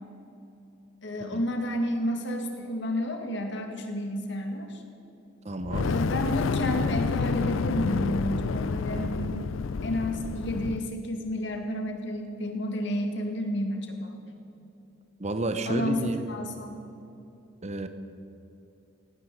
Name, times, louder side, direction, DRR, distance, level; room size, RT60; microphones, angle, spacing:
voice 1, 1.0-4.8 5.8-9.4 9.8-14.2 15.7-16.9, left 1 dB, 65° left, 4 dB, 2.0 m, -31 dB
voice 2, 5.4-5.9 15.2-16.2 17.6-17.9, right 2 dB, 35° right, 9 dB, 0.9 m, -31 dB
Fire, 5.6-10.9, left 4 dB, 80° left, 0.5 m, -29 dB
17.0 x 9.4 x 8.4 m, 2.8 s
head